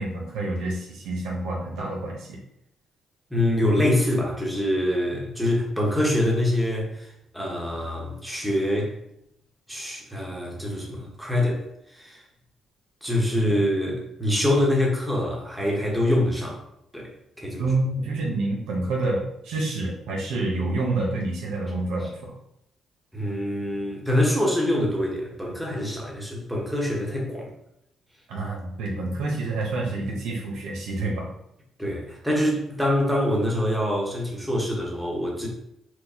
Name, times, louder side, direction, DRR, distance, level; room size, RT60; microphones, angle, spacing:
voice 1, 0.0-2.4 17.6-22.3 28.3-31.3, right 2 dB, 90° right, -2 dB, 0.8 m, -28 dB
voice 2, 3.3-8.9 9.7-11.6 11.9-12.2 13.0-16.6 16.9-17.1 17.4-17.7 23.1-27.5 31.8-35.5, left 1 dB, 5° right, -3 dB, 1.1 m, -25 dB
4.5 x 2.2 x 2.8 m, 0.80 s
cardioid pair, 90°, 0 cm